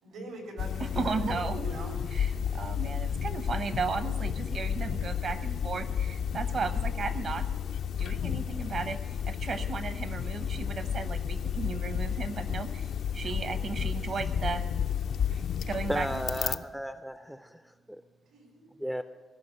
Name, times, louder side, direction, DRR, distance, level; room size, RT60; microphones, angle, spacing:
voice 1, 0.0-1.9 6.5-6.6 18.3-18.7, right 1 dB, 90° right, 1 dB, 3.6 m, -44 dB
sound 1, 0.6-16.6, left 8 dB, 65° left, 0.4 m, -32 dB
voice 2, 0.8-7.5 8.0-14.6 15.3-16.2, right 5 dB, 55° right, 10 dB, 0.9 m, -35 dB
voice 3, 15.9-17.6 17.9-18.0 18.8-19.0, equal, 5° right, 10 dB, 0.4 m, -34 dB
16.5 x 5.7 x 8.9 m, 1.3 s
cardioid pair, 125°, 0 cm